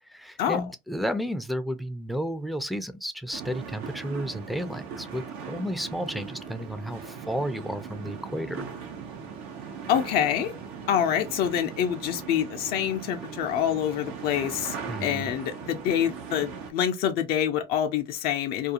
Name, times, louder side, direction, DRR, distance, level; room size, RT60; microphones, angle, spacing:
voice 1, 0.0-8.7 14.9-15.3, equal, ahead, 0.4 m, -32 dB
sound 1, 3.3-16.7, right 6 dB, 80° right, 0.7 m, -39 dB
voice 2, 9.9-10.5 10.9-18.7, left 9 dB, 70° left, 0.5 m, -26 dB
2.4 x 2.3 x 2.7 m
supercardioid pair, 75°, 16 cm